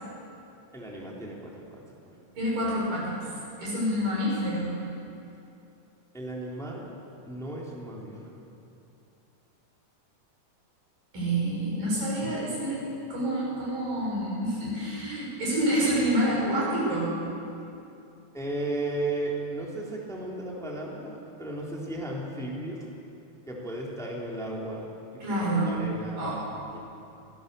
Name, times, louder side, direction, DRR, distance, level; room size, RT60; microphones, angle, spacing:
voice 1, 0.7-1.8 6.1-6.9 7.3-8.4 18.3-22.8 23.5-24.9 25.1-25.4 25.6-26.8, right 2 dB, ahead, -3 dB, 2.8 m, -35 dB
voice 2, 2.4-3.3 3.6-4.7 11.1-12.8 13.1-17.1 25.2-25.8 26.2-26.4, right 1 dB, 85° right, -6 dB, 8.1 m, -27 dB
23.5 x 16.5 x 6.8 m, 2.7 s
omnidirectional pair, 3.8 m